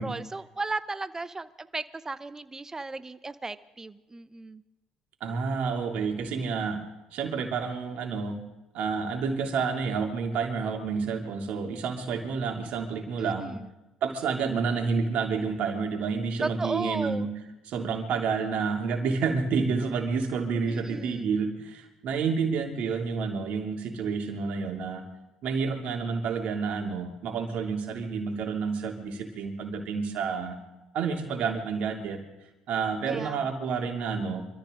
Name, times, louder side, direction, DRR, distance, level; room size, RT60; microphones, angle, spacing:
voice 1, 0.0-4.6 13.2-13.7 16.4-17.3 20.7-21.3 33.1-33.5, right 3 dB, 20° right, 13 dB, 0.9 m, -35 dB
voice 2, 5.2-6.8 7.1-8.4 8.7-13.5 14.0-17.3 17.7-25.0 25.4-30.6 30.9-32.2 32.7-34.5, right 5 dB, 70° right, 1 dB, 3.0 m, -29 dB
25.0 x 14.0 x 3.9 m, 1.0 s
supercardioid pair, 65°, 2 cm